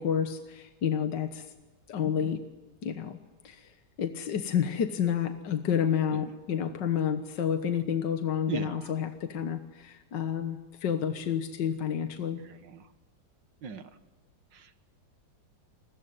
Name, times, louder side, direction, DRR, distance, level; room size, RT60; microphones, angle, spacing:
voice 1, 0.0-1.5 1.9-2.4 2.8-3.2 3.4-3.7 4.0-12.4, left 8 dB, 70° left, 8 dB, 2.0 m, -30 dB
voice 2, 8.5-8.9 12.4-12.8 13.6-13.8 14.5-14.8, right 6 dB, 75° right, 11 dB, 2.1 m, -39 dB
28.5 x 21.5 x 9.5 m, 1.3 s
omnidirectional pair, 2.0 m